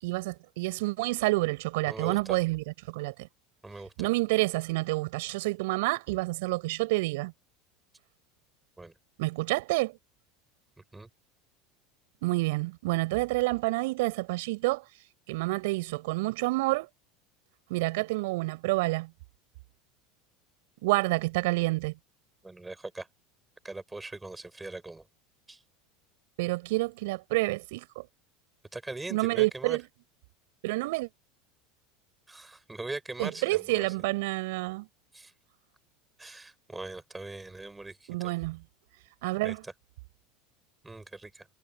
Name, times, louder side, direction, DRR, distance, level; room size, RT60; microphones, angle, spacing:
voice 1, 0.0-3.3 4.0-7.3 9.2-10.0 12.2-14.8 15.3-16.9 17.7-19.1 20.8-21.9 26.4-28.0 29.1-29.9 30.6-31.1 33.2-34.9 38.1-38.6 39.2-39.6, right 22 dB, 70° right, 6.3 m, -28 dB
voice 2, 1.9-2.4 3.6-3.9 8.8-8.9 10.9-11.1 21.0-21.1 22.4-23.1 23.6-25.0 25.5-25.6 28.7-29.8 32.3-33.9 35.1-35.3 36.2-38.3 39.4-39.7 40.8-41.5, right 2 dB, 10° right, 7.0 m, -41 dB
hypercardioid pair, 85°, 0 cm